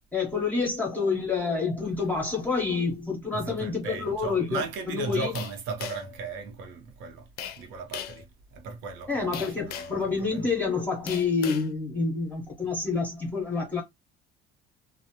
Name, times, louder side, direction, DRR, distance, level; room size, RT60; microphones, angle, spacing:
voice 1, 0.1-4.6 4.9-5.3 9.1-13.8, left 4 dB, 10° left, 0.6 m, -28 dB
voice 2, 3.3-7.3 7.6-8.3 8.5-9.3 9.6-10.5, right 4 dB, 80° right, 0.8 m, -36 dB
sound 1, 5.3-6.2 7.4-7.6 7.9-8.2 9.3-10.0 11.1-11.7, left 9 dB, 55° left, 0.4 m, -38 dB
2.4 x 2.0 x 2.9 m
cardioid pair, 170°, 19 cm